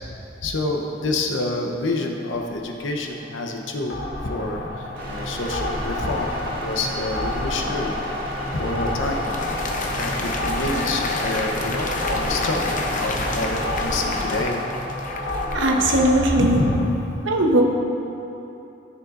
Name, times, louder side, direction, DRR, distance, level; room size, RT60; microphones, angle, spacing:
voice 1, 0.4-4.0 4.2-7.9 8.5-9.3 9.9-12.7 13.0-14.6 16.4-17.0, left 2 dB, 90° left, 2 dB, 0.8 m, -27 dB
sound 1, 2.3-16.8, left 2 dB, 60° left, 1.8 m, -30 dB
sound 2, 4.9-14.4, equal, 50° right, 1.7 m, -32 dB
Applause, 8.5-16.1, left 2 dB, 45° left, 0.7 m, -31 dB
voice 2, 15.5-16.7 17.3-17.6, right 1 dB, 85° right, 1 dB, 1.0 m, -18 dB
13.5 x 6.6 x 2.5 m, 2.9 s
head